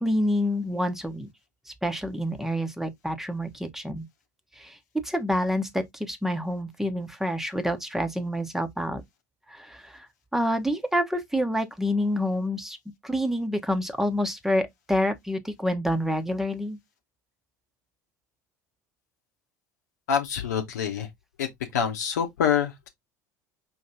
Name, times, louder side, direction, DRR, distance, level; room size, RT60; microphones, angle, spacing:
voice 1, 0.0-1.3 1.8-4.1 4.6-4.8 5.0-9.0 9.5-10.1 10.3-12.8 13.0-16.8, equal, 5° right, 1.0 m, -27 dB
voice 2, 20.1-21.1 21.4-22.9, left 7 dB, 70° left, 1.0 m, -26 dB
5.5 x 3.1 x 2.7 m
figure-of-eight pair, 70°, 10 cm